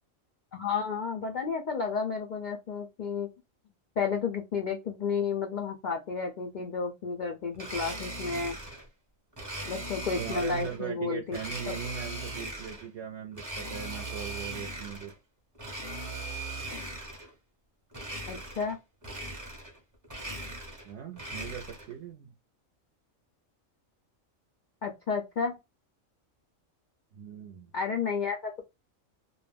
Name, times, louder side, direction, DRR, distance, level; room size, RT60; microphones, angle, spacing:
voice 1, 0.5-3.3 4.0-8.6 9.7-11.4 11.7-11.8 18.3-18.8 24.8-25.6 27.7-28.6, left 5 dB, 70° left, 0.4 m, -32 dB
Domestic sounds home sounds, 7.5-8.9 9.4-10.8 11.3-12.9 13.3-15.1 15.5-17.3 17.9-18.8 19.0-19.8 20.0-21.9, right 1 dB, 20° right, 0.6 m, -39 dB
voice 2, 10.2-15.1 20.8-22.3 27.1-27.7, right 8 dB, 65° right, 0.8 m, -39 dB
2.5 x 2.1 x 3.2 m
omnidirectional pair, 1.4 m